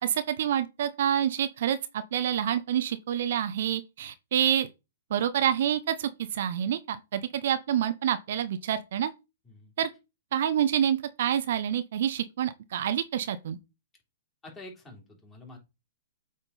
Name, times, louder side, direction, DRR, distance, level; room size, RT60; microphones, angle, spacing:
voice 1, 0.0-4.7 5.1-9.1 9.8-9.9 10.3-13.6, right 10 dB, 60° right, 0.7 m, -27 dB
voice 2, 14.4-15.6, left 2 dB, 15° left, 3.3 m, -47 dB
8.1 x 3.7 x 4.1 m
hypercardioid pair, 115°, 0 cm